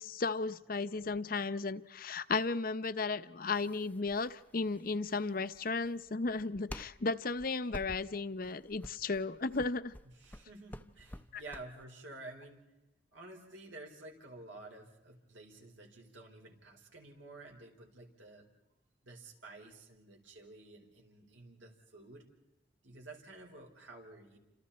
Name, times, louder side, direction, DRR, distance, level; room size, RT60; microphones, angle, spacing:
voice 1, 0.0-9.9 11.3-11.4, left 3 dB, 50° left, 13 dB, 0.8 m, -35 dB
sound 1, 3.5-11.8, left 1 dB, 10° left, 0.7 m, -50 dB
voice 2, 10.0-12.6 13.1-18.5 19.0-22.2 22.8-24.4, right 2 dB, 85° right, 1 dB, 4.8 m, -51 dB
29.5 x 26.5 x 4.3 m, 1.0 s
head